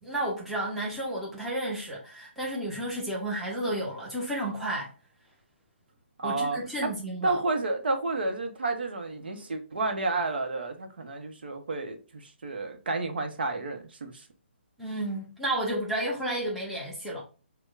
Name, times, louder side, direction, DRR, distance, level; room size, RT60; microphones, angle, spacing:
voice 1, 0.0-4.9 6.2-7.4 14.8-17.2, right 1 dB, ahead, 0.8 m, -32 dB
voice 2, 6.2-6.9 7.2-14.2, right 3 dB, 55° right, 0.8 m, -31 dB
6.2 x 2.2 x 2.4 m
figure-of-eight pair, 140°, 6 cm